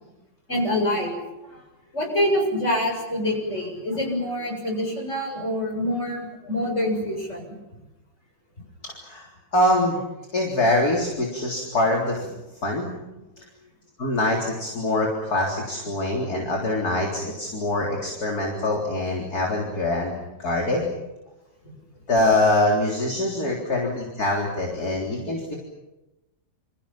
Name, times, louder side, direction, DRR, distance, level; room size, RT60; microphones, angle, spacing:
voice 1, 0.5-1.2 1.9-7.4, left 1 dB, 40° left, 2 dB, 7.9 m, -25 dB
voice 2, 8.8-9.3 9.5-10.0 10.3-12.3 12.6-12.9 14.0-20.1 20.4-20.8 22.1-25.6, left 1 dB, 55° left, -1 dB, 4.3 m, -24 dB
29.0 x 28.0 x 5.9 m, 0.98 s
omnidirectional pair, 2.0 m